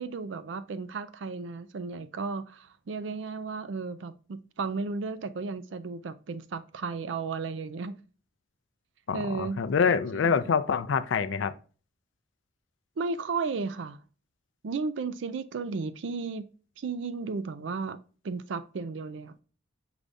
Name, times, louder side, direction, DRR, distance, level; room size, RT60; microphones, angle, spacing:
voice 1, 0.0-8.0 9.1-9.6 10.1-10.3 13.0-14.0 14.6-16.4 16.8-18.0 18.2-19.4, right 4 dB, 75° right, 0.4 m, -34 dB
voice 2, 9.1-11.5, left 6 dB, 75° left, 0.4 m, -26 dB
4.9 x 2.6 x 3.3 m
head